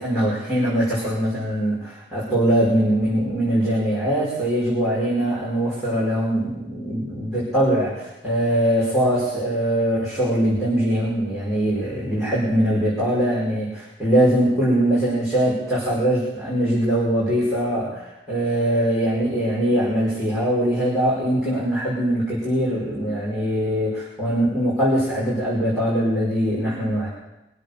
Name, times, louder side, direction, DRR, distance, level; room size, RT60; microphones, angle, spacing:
voice 1, 0.0-27.1, right 1 dB, ahead, -10 dB, 5.4 m, -22 dB
24.0 x 8.1 x 6.9 m, 0.93 s
head